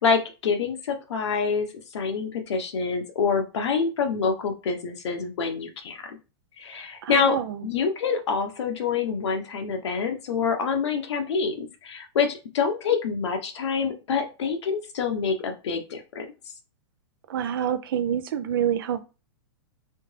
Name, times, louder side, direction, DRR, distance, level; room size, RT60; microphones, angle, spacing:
voice 1, 0.0-1.7 1.9-6.2 6.6-7.4 7.6-16.3, left 5 dB, 80° left, 1.1 m, -26 dB
voice 2, 7.0-7.7 17.3-19.0, right 9 dB, 55° right, 0.6 m, -27 dB
3.4 x 3.4 x 3.3 m
supercardioid pair, 175°, 14 cm